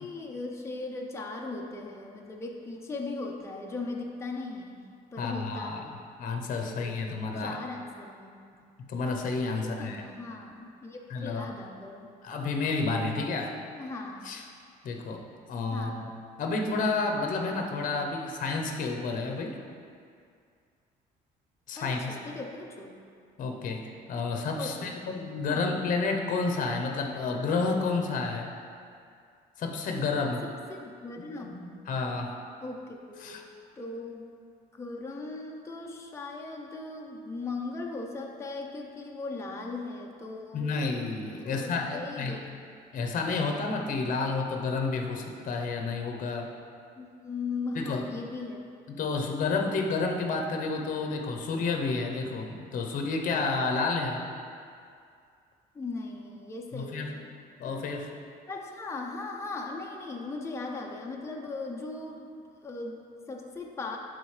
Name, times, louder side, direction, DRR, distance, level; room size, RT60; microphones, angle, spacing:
voice 1, 0.0-4.8 5.1-6.0 6.6-7.0 7.4-8.3 9.5-12.1 13.8-14.3 15.7-16.0 21.8-23.0 24.6-24.9 25.5-25.7 30.4-31.8 32.6-33.4 33.8-34.3 34.7-40.7 41.4-42.6 47.0-48.6 55.7-57.2 58.5-62.3 62.6-64.0, left 3 dB, 15° left, 0 dB, 0.7 m, -38 dB
voice 2, 5.2-5.8 6.2-7.6 8.9-10.0 11.1-11.5 12.2-13.6 14.2-14.4 14.8-15.9 16.4-19.6 21.7-22.2 23.4-28.5 29.6-30.4 31.9-32.3 33.2-33.4 40.5-42.4 42.9-46.5 47.7-48.0 48.9-54.2 56.7-57.1 57.6-58.1, left 4 dB, 50° left, 3 dB, 0.8 m, -30 dB
11.5 x 3.9 x 3.3 m, 2.3 s
cardioid pair, 110°, 17 cm